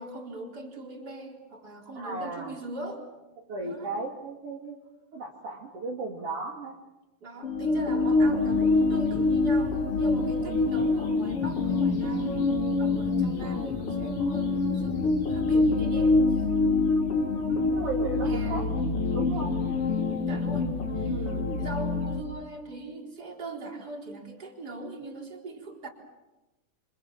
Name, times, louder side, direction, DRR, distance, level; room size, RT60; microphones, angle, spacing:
voice 1, 0.0-3.1 3.6-3.9 7.2-16.7 17.5-17.7 18.2-18.8 20.3-21.3 21.6-25.9, right 2 dB, 30° right, 1 dB, 4.4 m, -40 dB
voice 2, 2.0-2.6 3.5-4.8 5.1-6.8 10.4-10.8 16.4-16.8 17.7-18.6 19.1-19.5 21.0-21.5, right 3 dB, 50° right, -3 dB, 3.5 m, -36 dB
sound 1, 7.4-22.2, left 3 dB, 45° left, 4.1 m, -25 dB
28.5 x 25.5 x 7.4 m, 1.1 s
omnidirectional pair, 3.6 m